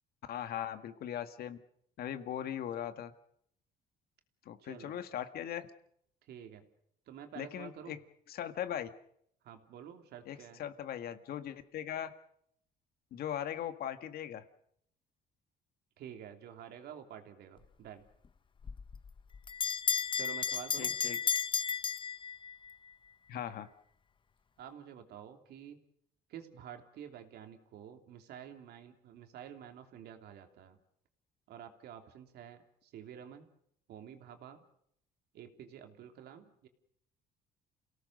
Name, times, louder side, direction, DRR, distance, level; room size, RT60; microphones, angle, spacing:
voice 1, 0.3-1.6 2.0-3.1 4.5-5.7 7.4-8.0 8.3-8.9 10.3-12.1 13.1-14.4 20.8-21.2 23.3-23.7, left 10 dB, 65° left, 9 dB, 1.9 m, -39 dB
voice 2, 4.6-5.0 6.2-6.7 7.1-8.0 9.4-10.6 16.0-18.0 20.1-21.0 24.6-25.8 26.3-30.8 31.5-33.5 33.9-34.6 35.3-36.7, right 9 dB, 70° right, 6 dB, 3.1 m, -49 dB
Bell, 18.6-22.7, left 6 dB, 30° left, 0.8 m, -33 dB
28.5 x 17.5 x 6.6 m, 0.70 s
cardioid pair, 110°, 17 cm